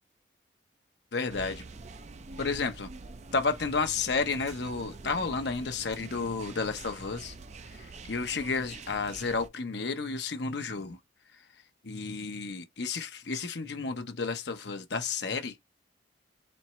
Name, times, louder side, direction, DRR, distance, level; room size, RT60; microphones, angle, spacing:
voice 1, 1.1-1.6 2.4-2.9 3.3-7.3 7.7-11.0 11.8-15.5, left 4 dB, 60° left, 0.8 m, -32 dB
sound 1, 1.3-9.5, right 3 dB, 35° right, 0.4 m, -46 dB
4.3 x 3.2 x 3.0 m
head